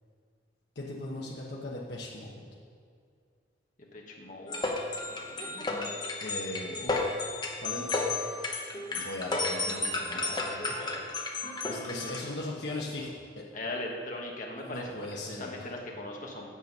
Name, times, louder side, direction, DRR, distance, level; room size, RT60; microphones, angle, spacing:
voice 1, 0.8-2.5 6.2-7.2 7.6-7.9 8.9-10.7 11.6-13.1 14.6-15.7, left 2 dB, 60° left, -4 dB, 1.0 m, -39 dB
voice 2, 3.9-4.7 5.0-5.7 8.1-9.0 11.7-12.2 13.5-16.5, left 1 dB, 40° left, -1 dB, 1.2 m, -41 dB
sound 1, 4.5-12.3, left 2 dB, 25° left, 0.8 m, -33 dB
8.7 x 6.9 x 5.3 m, 2.1 s
head